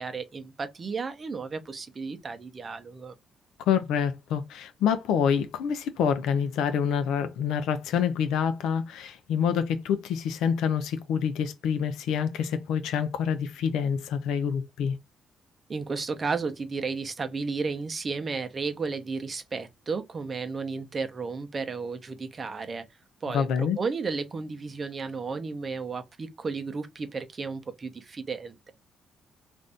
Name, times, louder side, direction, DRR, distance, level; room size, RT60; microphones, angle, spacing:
voice 1, 0.0-3.1 15.7-22.9 23.2-28.7, right 4 dB, 35° right, 0.7 m, -33 dB
voice 2, 3.7-15.0 23.3-23.8, left 7 dB, 85° left, 0.5 m, -27 dB
2.6 x 2.6 x 3.3 m
cardioid pair, 90°, 0 cm